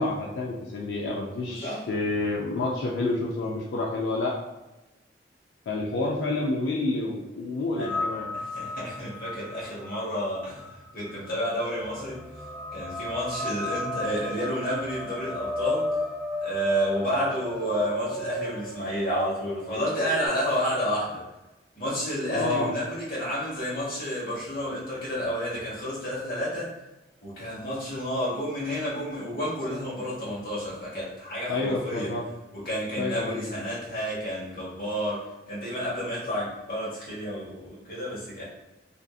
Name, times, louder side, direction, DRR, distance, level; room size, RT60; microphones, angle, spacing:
voice 1, 0.0-4.4 5.7-8.3 22.3-22.7 31.5-32.2 33.0-33.4, left 2 dB, 85° left, -2 dB, 0.4 m, -29 dB
voice 2, 1.5-1.8 7.8-8.0 8.3-10.7 10.9-12.2 12.7-15.9 16.4-21.2 21.8-26.7 27.2-32.1 32.5-38.4, equal, 55° left, -7 dB, 1.2 m, -30 dB
sound 1, 7.8-20.3, left 1 dB, ahead, 0.6 m, -34 dB
2.6 x 2.5 x 2.3 m, 1.0 s
head